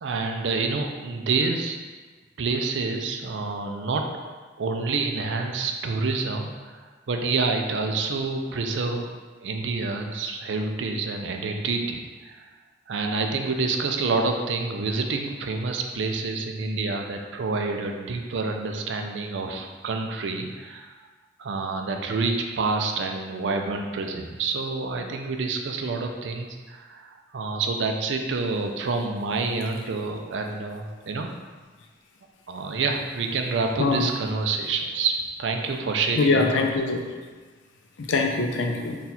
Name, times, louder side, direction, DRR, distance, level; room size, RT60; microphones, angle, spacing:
voice 1, 0.0-1.8 2.4-4.1 4.6-9.1 9.4-12.4 12.9-20.9 21.4-31.3 32.5-36.7, right 3 dB, 75° right, 4 dB, 0.4 m, -28 dB
voice 2, 36.2-37.0 38.0-39.0, left 3 dB, 90° left, 2 dB, 0.5 m, -23 dB
4.1 x 2.4 x 4.1 m, 1.4 s
head